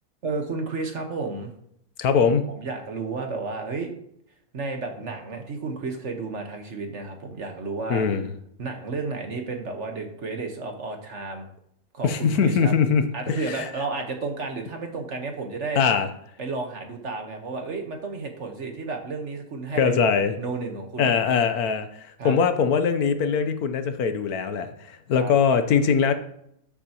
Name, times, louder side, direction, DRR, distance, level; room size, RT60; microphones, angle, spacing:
voice 1, 0.2-1.5 2.5-3.9 4.5-8.1 8.6-11.5 11.9-12.7 13.1-15.8 16.4-20.1 20.4-21.1 22.2-22.3 25.2-25.3, right 3 dB, 50° right, 4 dB, 1.5 m, -32 dB
voice 2, 2.0-2.4 7.9-8.3 12.0-13.7 15.8-16.1 19.8-20.3 21.0-26.1, left 6 dB, 75° left, 9 dB, 1.3 m, -22 dB
13.5 x 6.9 x 3.0 m, 0.72 s
omnidirectional pair, 1.6 m